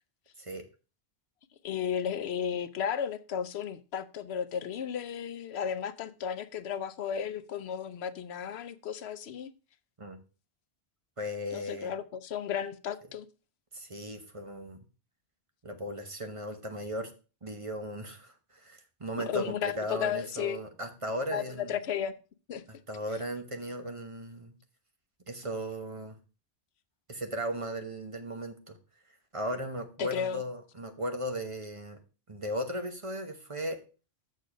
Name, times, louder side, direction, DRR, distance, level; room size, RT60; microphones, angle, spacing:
voice 1, 1.6-9.5 11.5-13.3 19.3-20.6 21.3-21.4 21.7-22.2 22.5-22.6 30.0-30.4, left 8 dB, 80° left, 0.9 m, -34 dB
voice 2, 11.2-11.9 13.7-14.8 15.6-17.1 17.4-21.8 22.9-24.5 25.3-26.2 27.1-28.8 29.3-32.0 32.3-33.8, equal, 30° right, 1.1 m, -36 dB
6.8 x 6.6 x 5.1 m
omnidirectional pair, 1.1 m